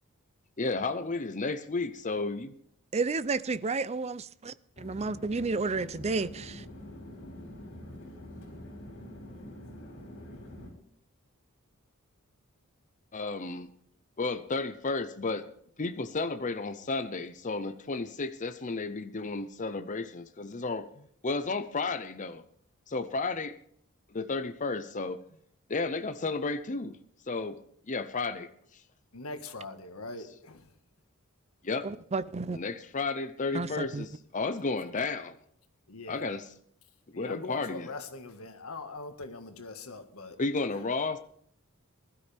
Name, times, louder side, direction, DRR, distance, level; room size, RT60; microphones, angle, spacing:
voice 1, 0.6-2.5 13.1-13.7 14.2-15.4 15.8-22.4 22.9-23.5 24.1-25.2 25.7-27.0 27.3-27.6 27.8-28.8 31.6-31.9 32.5-35.4 36.1-36.5 37.1-37.9 40.4-41.2, left 3 dB, 35° left, 0.7 m, -33 dB
voice 2, 2.9-6.6 31.8-32.6 33.5-34.1, right 3 dB, 30° right, 0.5 m, -31 dB
sound 1, 4.8-10.7, left 1 dB, 60° left, 5.5 m, -45 dB
voice 3, 29.1-30.7 35.9-36.3 37.1-40.4, left 3 dB, 75° left, 1.7 m, -42 dB
20.0 x 13.0 x 3.5 m
head